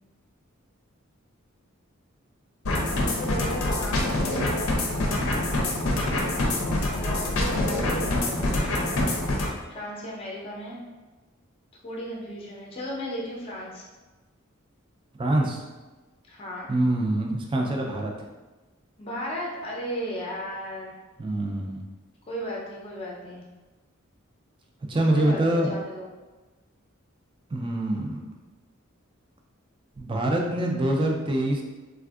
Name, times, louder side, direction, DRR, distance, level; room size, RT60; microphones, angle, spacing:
sound 1, 2.6-9.5, left 1 dB, 85° left, 0.6 m, -25 dB
voice 1, 2.9-5.3 6.9-8.8 9.7-10.8 11.8-13.9 16.3-16.8 19.0-20.9 22.3-23.4 25.1-26.0, equal, 30° left, -4 dB, 0.5 m, -35 dB
voice 2, 6.2-6.9 15.2-15.6 16.7-18.3 21.2-21.8 24.9-25.7 27.5-28.2 30.0-31.6, right 1 dB, 25° right, 1 dB, 0.4 m, -25 dB
3.5 x 2.5 x 2.3 m, 1.2 s
head